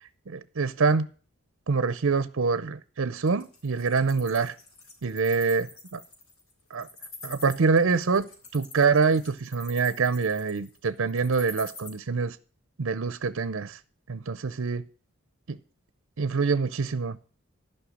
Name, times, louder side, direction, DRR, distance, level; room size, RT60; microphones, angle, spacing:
voice 1, 0.3-1.1 1.7-4.5 5.0-6.0 6.7-6.9 7.2-12.4 12.8-13.8 14.1-14.8 15.5-15.6 16.2-17.2, right 4 dB, 65° right, 0.6 m, -25 dB
Wild animals, 3.3-11.9, left 3 dB, 75° left, 3.8 m, -45 dB
11.5 x 5.6 x 7.7 m
head